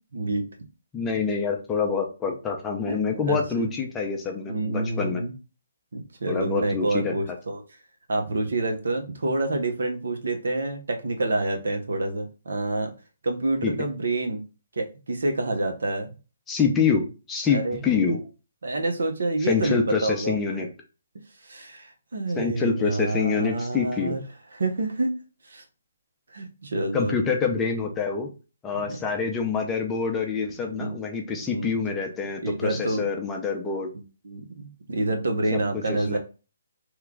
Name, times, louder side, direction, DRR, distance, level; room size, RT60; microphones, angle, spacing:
voice 1, 0.1-0.5 2.9-3.7 4.5-5.3 5.9-7.6 8.1-12.9 13.2-14.4 14.8-16.1 17.5-17.8 18.6-20.4 21.4-24.2 24.5-25.2 25.5-25.6 26.3-27.3 28.7-29.0 30.7-31.0 31.5-31.7 32.4-33.0 34.2-36.2, right 2 dB, 75° right, 3 dB, 0.8 m, -28 dB
voice 2, 0.9-5.2 6.3-7.1 13.6-13.7 16.5-18.2 19.4-20.7 22.4-24.2 26.9-28.3 28.6-33.9 35.5-35.6 36.1-36.2, left 5 dB, 10° left, 1 dB, 0.6 m, -26 dB
3.0 x 2.3 x 3.6 m, 0.32 s
hypercardioid pair, 155°, 0 cm